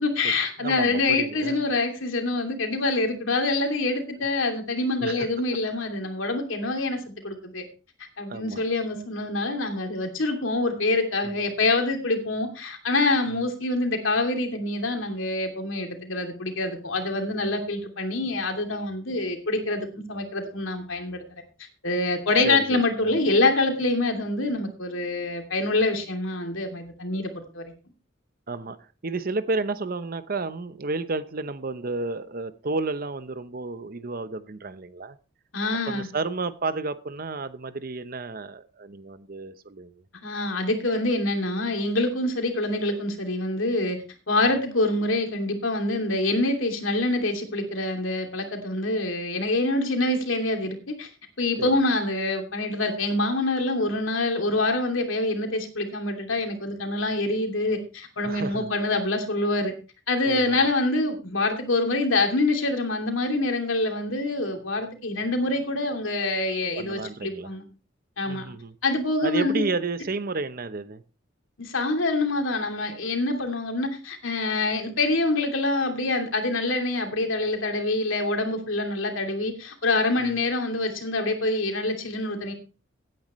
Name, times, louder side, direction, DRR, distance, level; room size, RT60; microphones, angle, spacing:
voice 1, 0.0-7.6 8.2-21.2 21.8-27.6 35.5-36.1 40.2-44.0 44.3-51.1 51.4-59.7 60.1-67.6 68.2-68.4 68.8-69.6 71.6-82.5, left 2 dB, 85° left, 2.8 m, -26 dB
voice 2, 0.6-1.7 5.0-5.3 8.3-8.7 11.2-11.3 13.3-13.4 22.4-23.2 28.5-35.2 35.9-40.0 51.6-51.8 58.2-58.7 60.2-60.7 66.7-67.5 68.2-68.8 69.2-71.0 80.2-80.3, right 3 dB, 50° right, 0.8 m, -32 dB
16.5 x 9.3 x 3.1 m
head